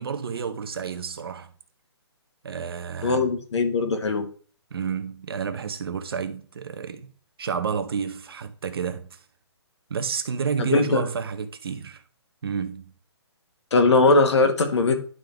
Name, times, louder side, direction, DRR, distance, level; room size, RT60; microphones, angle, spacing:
voice 1, 0.0-1.5 2.4-3.3 4.7-7.1 7.4-9.2 9.9-12.0 12.4-12.9, right 6 dB, 55° right, 0.9 m, -30 dB
voice 2, 3.0-4.3 10.6-11.0 13.7-15.0, left 3 dB, 80° left, 1.7 m, -20 dB
11.0 x 3.9 x 3.5 m
hypercardioid pair, 175°, 14 cm